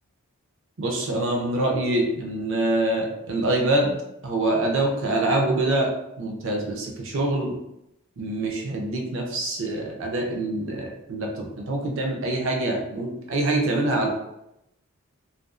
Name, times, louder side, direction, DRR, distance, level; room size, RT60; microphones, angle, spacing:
voice 1, 0.8-4.0 4.2-5.9 6.2-7.5 8.2-14.1, right 2 dB, 55° right, 1 dB, 0.5 m, -25 dB
2.4 x 2.3 x 2.4 m, 0.84 s
head